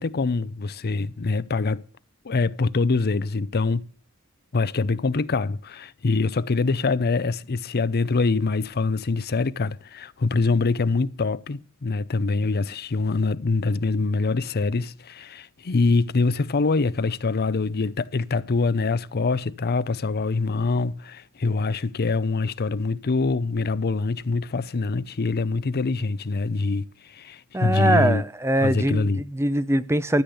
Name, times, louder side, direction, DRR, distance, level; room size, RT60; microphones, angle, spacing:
voice 1, 0.0-1.8 2.2-3.9 4.5-28.2 28.6-29.2, left 3 dB, 45° left, 0.6 m, -24 dB
voice 2, 27.5-30.2, right 1 dB, 10° right, 0.6 m, -22 dB
13.5 x 8.6 x 7.9 m
head